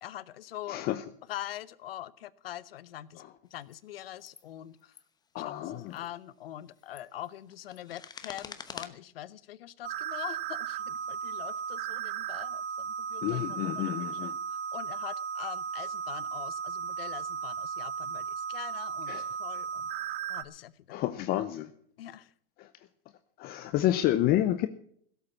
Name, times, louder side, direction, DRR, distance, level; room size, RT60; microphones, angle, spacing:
voice 1, 0.0-0.9 1.3-3.2 3.5-5.0 5.4-19.9 20.3-21.0 22.0-22.3, left 13 dB, 75° left, 18 dB, 0.9 m, -44 dB
voice 2, 0.7-1.0 5.3-5.9 13.2-14.3 19.1-19.2 20.9-21.7 22.6-22.7 23.4-24.7, left 13 dB, 30° left, 11 dB, 0.7 m, -29 dB
sound 1, 3.6-3.8 4.2-4.5 4.8-5.0 5.8-6.1 6.7-8.9, left 6 dB, 15° left, 0.9 m, -46 dB
sound 2, 9.8-20.4, right 7 dB, 30° right, 1.0 m, -36 dB
16.5 x 8.1 x 7.1 m, 0.64 s
hypercardioid pair, 130°, 29 cm